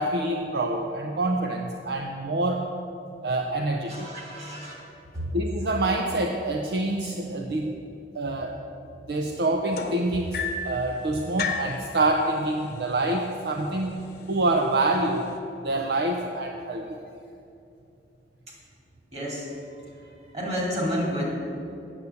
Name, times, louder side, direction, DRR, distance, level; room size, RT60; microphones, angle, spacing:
voice 1, 0.0-2.6 3.2-4.2 5.3-7.8 8.1-8.6 9.1-13.9 14.3-15.3 15.6-16.9, right 2 dB, 65° right, 3 dB, 0.6 m, -26 dB
voice 2, 3.9-4.8 5.1-5.2 19.1-19.5 19.8-20.1 20.3-21.2, equal, 40° right, -3 dB, 3.1 m, -30 dB
sound 1, 9.7-10.8 11.4-11.8 12.8-12.9 13.3-13.7 14.4-14.5, left 5 dB, 60° left, 1.0 m, -30 dB
8.9 x 7.0 x 8.1 m, 2.7 s
head